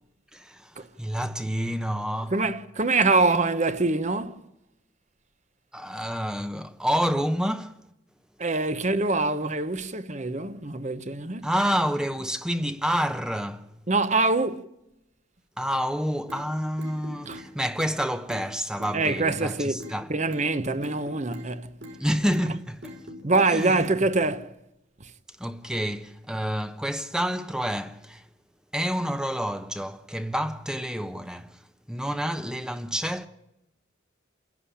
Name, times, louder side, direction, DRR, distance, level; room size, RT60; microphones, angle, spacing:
voice 1, 0.3-2.4 5.7-7.7 11.4-13.7 15.6-20.1 22.0-23.0 23.5-23.9 25.4-28.2 28.7-31.6 31.9-33.3, equal, 5° right, 0.8 m, -28 dB
voice 2, 2.3-4.4 8.4-11.5 13.9-14.7 17.3-17.4 18.9-21.7 23.2-24.5 25.0-25.1, right 3 dB, 35° right, 1.0 m, -25 dB
sound 1, 16.3-16.4 16.8-17.5 17.8-18.0 18.3-18.5 18.8-19.5 19.8-20.0 20.3-20.5 20.8-21.5 21.8-22.0 22.3-22.5 22.8-23.5 23.8-24.0, equal, 55° right, 3.7 m, -41 dB
28.5 x 11.0 x 10.0 m
head